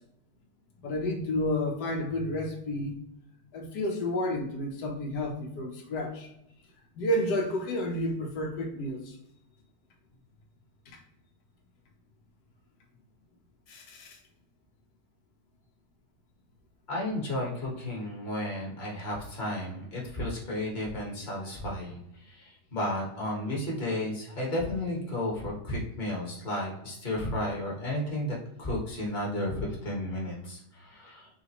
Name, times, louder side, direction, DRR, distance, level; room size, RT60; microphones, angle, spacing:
voice 1, 0.8-2.9 3.5-6.3 7.0-9.2 10.9-11.0 13.7-14.2, left 1 dB, 85° left, 2 dB, 1.4 m, -31 dB
voice 2, 16.9-31.3, left 1 dB, 30° left, -3 dB, 1.6 m, -33 dB
7.1 x 2.4 x 2.9 m, 0.80 s
omnidirectional pair, 1.8 m